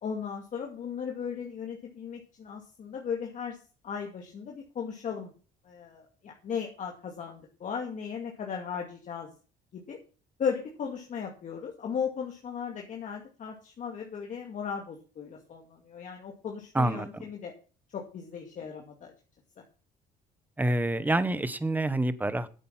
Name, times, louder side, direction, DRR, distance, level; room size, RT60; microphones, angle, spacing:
voice 1, 0.0-3.6 3.8-5.3 5.6-9.3 9.7-10.0 10.4-17.5 17.9-19.1, left 6 dB, 50° left, 1 dB, 2.3 m, -36 dB
voice 2, 16.7-17.2 20.6-22.5, right 1 dB, 10° right, 14 dB, 1.1 m, -27 dB
10.5 x 8.4 x 5.9 m, 0.37 s
cardioid pair, 110°, 17 cm